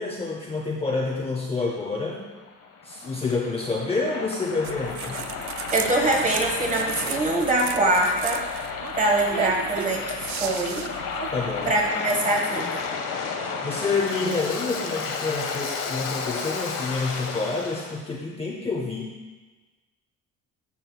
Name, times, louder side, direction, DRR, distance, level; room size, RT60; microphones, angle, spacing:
voice 1, 0.0-2.2 2.8-5.2 11.3-11.7 13.6-19.1, left 3 dB, 15° left, -1 dB, 0.6 m, -28 dB
Waves surf, 2.2-18.0, left 5 dB, 65° left, 1.0 m, -32 dB
sound 1, 4.6-11.9, right 9 dB, 60° right, 0.5 m, -35 dB
voice 2, 5.7-8.4 8.9-10.9 11.6-12.8, right 1 dB, 20° right, 0 dB, 1.3 m, -23 dB
12.5 x 6.0 x 2.3 m, 1.3 s
cardioid pair, 155°, 34 cm